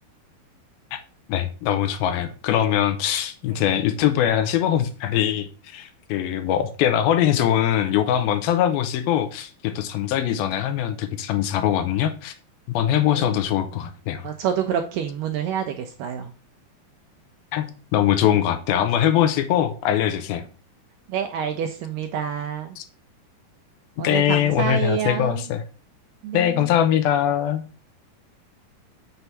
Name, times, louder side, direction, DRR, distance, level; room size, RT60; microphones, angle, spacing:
voice 1, 1.3-12.3 12.7-14.3 17.5-17.7 17.9-20.4 22.8-22.9 24.0-25.6 26.3-27.6, left 10 dB, 80° left, 2.6 m, -22 dB
voice 2, 14.2-16.3 21.1-22.8 24.0-25.4 26.2-26.6, right 8 dB, 80° right, 2.0 m, -27 dB
6.8 x 4.6 x 5.6 m
omnidirectional pair, 4.4 m